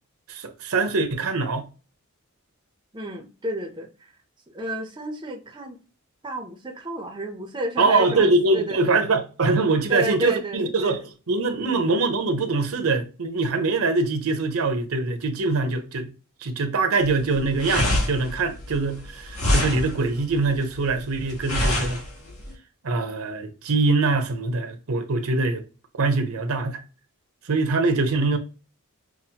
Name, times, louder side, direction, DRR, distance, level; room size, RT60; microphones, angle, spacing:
voice 1, 0.3-1.6 7.8-11.0 11.3-16.1 16.4-22.0 22.8-25.6 26.0-26.8 27.4-28.4, right 3 dB, 65° right, 0.7 m, -23 dB
voice 2, 2.9-4.1 4.5-5.8 6.2-9.0 9.9-11.0 11.6-11.9, right 1 dB, 20° right, 0.6 m, -32 dB
sound 1, 17.0-22.5, left 1 dB, 75° left, 1.3 m, -26 dB
5.8 x 2.1 x 2.8 m
head